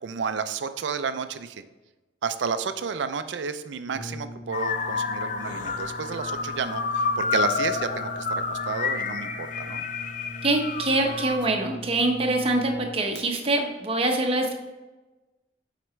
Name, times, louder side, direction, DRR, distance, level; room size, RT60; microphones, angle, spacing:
voice 1, 0.0-1.6 2.2-8.1 8.5-9.8, right 5 dB, 85° right, 11 dB, 0.5 m, -31 dB
Brass instrument, 3.9-13.2, equal, 65° left, 1.3 m, -41 dB
sound 1, 4.5-11.4, left 5 dB, 45° left, 0.5 m, -29 dB
voice 2, 10.4-14.5, right 2 dB, 30° right, 2 dB, 0.9 m, -24 dB
7.7 x 4.9 x 3.2 m, 1.1 s
head